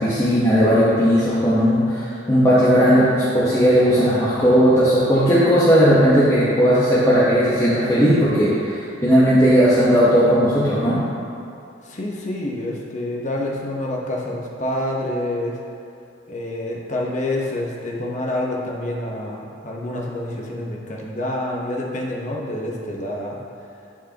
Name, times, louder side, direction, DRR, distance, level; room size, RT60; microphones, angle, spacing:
voice 1, 0.0-11.0, equal, 15° left, -11 dB, 1.1 m, -16 dB
voice 2, 11.8-15.6 16.3-23.4, left 1 dB, 40° left, -2 dB, 1.0 m, -27 dB
11.5 x 4.7 x 2.9 m, 2.6 s
head